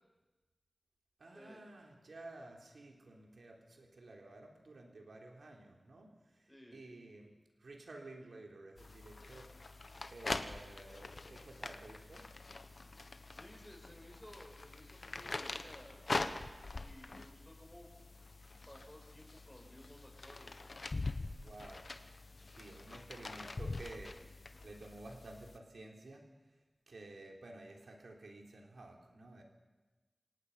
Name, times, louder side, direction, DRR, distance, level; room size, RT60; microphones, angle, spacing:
voice 1, 1.2-9.8 10.1-12.3 21.4-21.9 22.5-26.6 26.9-29.4, right 2 dB, 90° right, 1 dB, 3.5 m, -53 dB
voice 2, 6.5-6.8 12.8-12.9 13.3-17.9 18.7-20.6, equal, 10° left, -1 dB, 6.7 m, -57 dB
sound 1, 8.8-25.6, left 3 dB, 60° left, 1.1 m, -44 dB
25.5 x 18.5 x 5.6 m, 1.2 s
wide cardioid pair, 60°, 0 cm